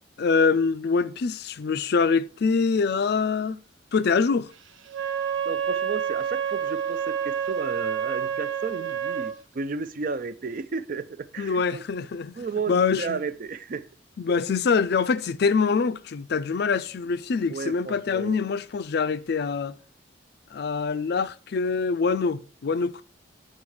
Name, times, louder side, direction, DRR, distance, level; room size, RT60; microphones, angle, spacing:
voice 1, 0.2-3.6 3.9-4.5 11.4-12.4 12.7-13.2 14.2-19.7 20.5-23.0, left 5 dB, 60° left, 0.4 m, -24 dB
Wind instrument woodwind instrument, 4.9-9.4, right 8 dB, 85° right, 0.7 m, -28 dB
voice 2, 5.5-11.8 12.4-13.9 17.5-18.4, right 4 dB, 45° right, 0.4 m, -33 dB
8.6 x 4.5 x 4.7 m
head